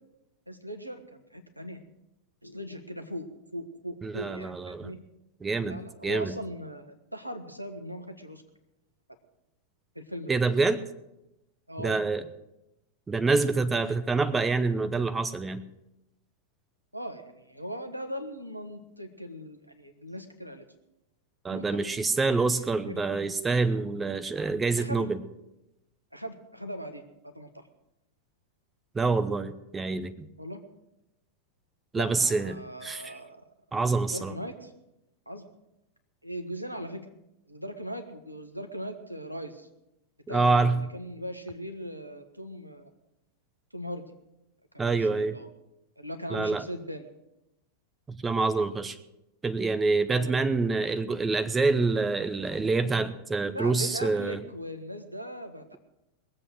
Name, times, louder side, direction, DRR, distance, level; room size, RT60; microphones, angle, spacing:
voice 1, 0.5-1.8 2.4-3.3 3.5-5.0 5.7-8.4 9.9-10.3 11.7-12.0 16.9-20.6 21.5-21.8 22.5-23.0 24.8-25.1 26.1-27.7 30.4-30.6 31.9-33.4 34.1-34.7 35.3-35.5 36.2-37.0 37.5-39.7 40.3-42.9 43.7-44.0 44.7-45.5 46.0-47.1 50.1-50.4 53.5-55.8, equal, 90° right, 7 dB, 1.3 m, -39 dB
voice 2, 4.0-4.9 5.4-6.3 10.3-10.8 11.8-12.2 13.1-15.6 21.4-25.2 28.9-30.3 31.9-33.1 33.7-34.3 40.3-40.8 44.8-45.4 46.3-46.6 48.1-49.0 49.4-54.4, right 3 dB, 15° right, 12 dB, 0.8 m, -26 dB
21.0 x 7.7 x 6.4 m, 0.89 s
figure-of-eight pair, 90°, 0 cm